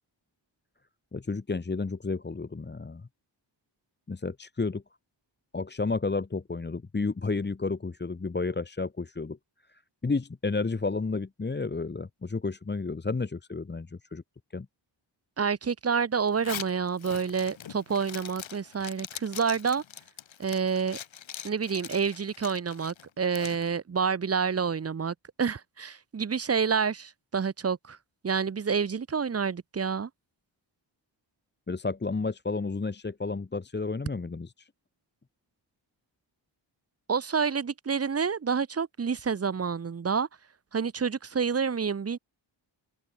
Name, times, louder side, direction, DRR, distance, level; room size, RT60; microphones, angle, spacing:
voice 1, 1.1-3.1 4.1-4.8 5.5-9.4 9.7-14.2 14.5-14.7 31.7-34.7, left 3 dB, 25° left, 1.1 m, -31 dB
voice 2, 15.4-19.8 20.4-21.0 21.4-28.0 28.2-30.1 37.1-40.3 40.7-42.2, right 6 dB, 35° right, 0.7 m, -28 dB
Zipper (clothing), 16.3-23.6, left 9 dB, 85° left, 1.4 m, -42 dB
wide cardioid pair, 145°, 45 cm